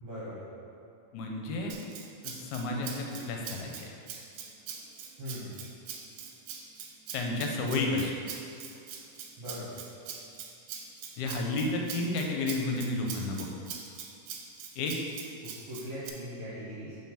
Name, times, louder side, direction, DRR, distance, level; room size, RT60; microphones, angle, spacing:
voice 1, 0.0-0.5 5.2-5.6 9.4-9.8 15.4-17.0, equal, 55° right, -11 dB, 2.3 m, -40 dB
voice 2, 1.1-1.8 2.2-3.9 7.1-8.2 11.2-13.5 14.8-15.0, left 2 dB, 75° left, 0 dB, 2.0 m, -31 dB
Rattle (instrument), 1.7-16.1, right 7 dB, 85° right, 2.1 m, -43 dB
5.7 x 4.7 x 5.6 m, 2.5 s
omnidirectional pair, 3.7 m